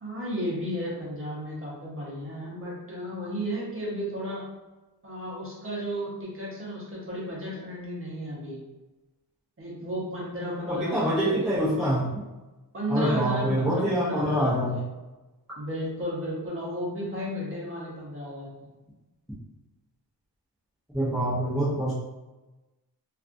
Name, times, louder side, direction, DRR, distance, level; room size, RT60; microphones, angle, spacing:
voice 1, 0.0-4.4 5.0-8.6 9.6-11.8 12.7-14.6 15.6-18.5, equal, 30° right, -5 dB, 0.8 m, -33 dB
voice 2, 10.7-12.1 12.9-14.8 20.9-21.9, equal, ahead, -10 dB, 0.5 m, -25 dB
2.5 x 2.4 x 2.5 m, 1.1 s
wide cardioid pair, 160°, 41 cm